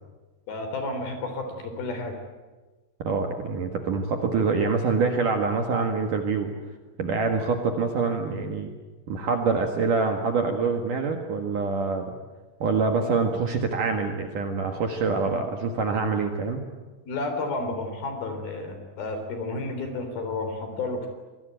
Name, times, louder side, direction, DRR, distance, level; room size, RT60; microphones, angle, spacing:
voice 1, 0.5-2.2 17.1-21.1, left 2 dB, 55° left, 6 dB, 5.4 m, -31 dB
voice 2, 3.0-6.5 7.0-8.7 9.1-12.1 12.6-16.6, right 4 dB, 55° right, 4 dB, 2.7 m, -25 dB
26.5 x 21.0 x 9.2 m, 1.2 s
omnidirectional pair, 5.5 m